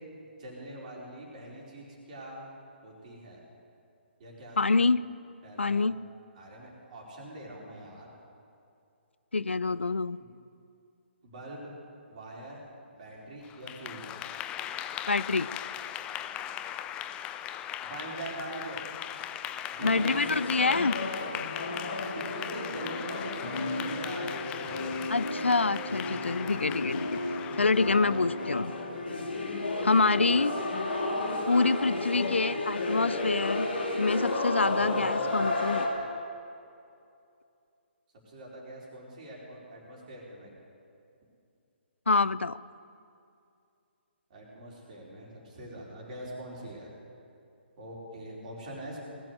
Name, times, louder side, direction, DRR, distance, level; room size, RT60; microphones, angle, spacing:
voice 1, 0.4-2.5 2.8-3.4 4.2-4.8 5.4-5.9 6.3-8.1 10.2-10.3 11.2-11.7 12.1-12.6 13.0-14.1 17.8-18.8 19.7-20.4 20.7-20.9 22.1-24.8 28.4-28.5 29.8-30.0 38.3-40.5 44.3-46.9 47.8-49.0, right 1 dB, 40° right, -3 dB, 4.5 m, -43 dB
voice 2, 4.6-5.0 5.6-6.0 9.3-10.2 15.1-15.5 19.8-21.0 25.1-27.2 27.6-28.7 29.8-30.6 31.5-33.7 34.0-35.9 42.1-42.6, left 3 dB, 80° left, 18 dB, 0.4 m, -26 dB
Clapping / Applause, 13.4-28.7, left 11 dB, 15° left, 0.4 m, -39 dB
sound 1, 19.8-35.9, left 2 dB, 65° left, 2.5 m, -32 dB
19.5 x 7.6 x 8.2 m, 2.5 s
figure-of-eight pair, 135°, 6 cm